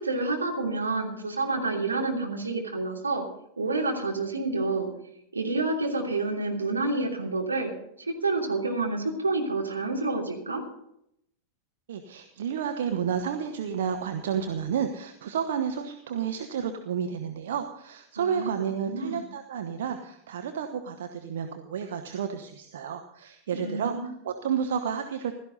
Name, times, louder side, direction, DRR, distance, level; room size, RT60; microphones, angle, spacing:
voice 1, 0.0-3.2 3.6-4.9 5.3-7.7 8.0-10.6 18.1-18.5 18.9-19.2 23.5-24.1, right 3 dB, 75° right, 0 dB, 3.0 m, -28 dB
voice 2, 11.9-25.4, right 7 dB, 60° right, 6 dB, 1.1 m, -31 dB
16.5 x 13.0 x 4.1 m, 0.76 s
figure-of-eight pair, 90°, 0 cm